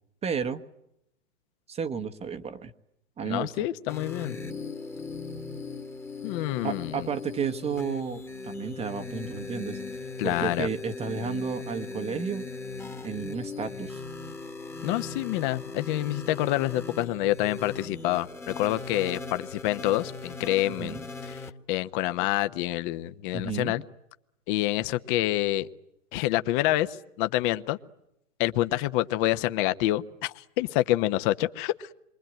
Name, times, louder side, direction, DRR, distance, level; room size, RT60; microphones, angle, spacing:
voice 1, 0.2-0.6 1.7-2.7 3.2-3.7 6.6-9.8 10.2-12.4 13.0-14.0 20.7-21.1 23.3-23.7, right 6 dB, 15° right, 8 dB, 1.1 m, -32 dB
voice 2, 3.2-4.4 6.2-7.1 10.2-10.7 14.8-23.8 24.5-25.7 26.1-27.8 28.4-31.9, left 15 dB, 40° left, 11 dB, 1.2 m, -27 dB
sound 1, 3.9-21.5, left 3 dB, 5° left, 1.5 m, -39 dB
27.5 x 23.5 x 9.1 m, 0.81 s
hypercardioid pair, 120°, 38 cm